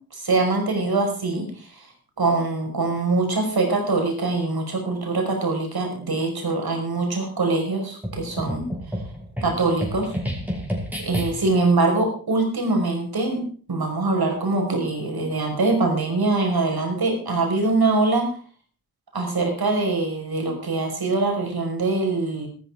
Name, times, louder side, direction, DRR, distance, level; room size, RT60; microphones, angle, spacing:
voice 1, 0.1-1.9 2.2-8.7 9.4-10.1 11.0-18.3 19.1-22.5, right 3 dB, 80° right, 3 dB, 5.6 m, -23 dB
sound 1, 8.0-11.7, equal, 5° right, 5.6 m, -30 dB
14.0 x 13.0 x 4.9 m, 0.41 s
wide cardioid pair, 65°, 37 cm